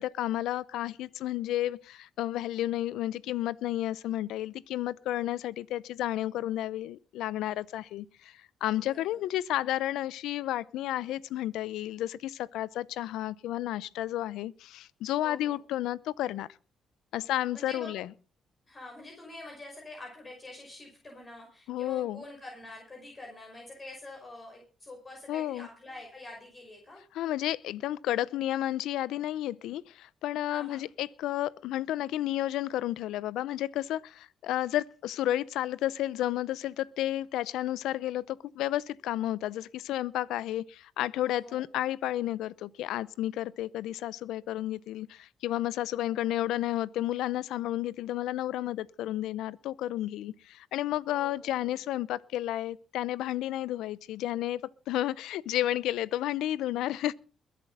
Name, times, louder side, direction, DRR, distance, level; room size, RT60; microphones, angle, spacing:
voice 1, 0.0-16.5 17.1-18.1 21.7-22.2 25.3-25.7 27.1-54.6 54.9-57.1, left 13 dB, 85° left, 0.6 m, -32 dB
voice 2, 8.7-9.2 15.2-15.6 17.2-17.3 17.5-17.9 18.7-27.0 30.5-30.9 41.2-41.6 51.1-51.8, left 2 dB, 30° left, 5.5 m, -46 dB
22.0 x 7.6 x 5.6 m
cardioid pair, 90°, 0 cm